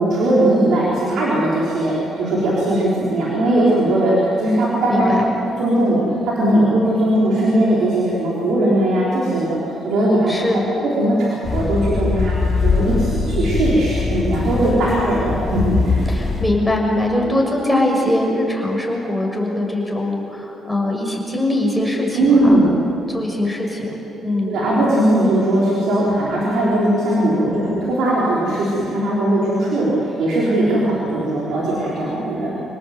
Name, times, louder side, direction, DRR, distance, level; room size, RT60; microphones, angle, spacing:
voice 1, 0.0-5.1 5.6-6.0 6.4-10.4 11.0-12.4 12.6-16.1 22.2-22.7 24.4-32.6, right 1 dB, 75° right, -7 dB, 5.5 m, -18 dB
voice 2, 4.9-5.3 10.3-10.7 14.7-15.2 16.1-22.5 23.1-24.6 27.5-27.7, left 1 dB, ahead, -1 dB, 6.2 m, -22 dB
sound 1, 11.4-16.5, left 4 dB, 45° left, 4.9 m, -21 dB
28.0 x 18.5 x 8.2 m, 3.0 s
cardioid pair, 90°, 0 cm